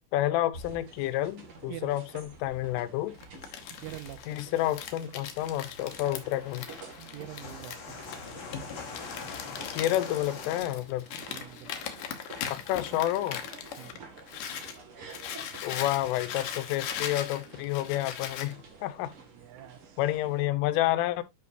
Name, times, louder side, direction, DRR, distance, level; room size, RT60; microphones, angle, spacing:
voice 1, 0.1-3.1 4.3-6.7 9.7-11.1 12.5-13.4 15.6-19.1 20.0-21.2, left 14 dB, 85° left, 3.3 m, -29 dB
sound 1, 0.5-20.4, right 4 dB, 50° right, 1.6 m, -50 dB
Crumpling crinkling, 3.2-14.8 15.1-18.5, left 9 dB, 70° left, 2.0 m, -39 dB
voice 2, 3.8-4.4 6.4-6.5 7.1-8.1 11.3-11.7 13.8-14.0 19.2-20.0, right 13 dB, 85° right, 3.1 m, -45 dB
sound 2, 5.3-10.6, left 4 dB, 50° left, 1.9 m, -44 dB
11.0 x 5.9 x 2.6 m
omnidirectional pair, 5.6 m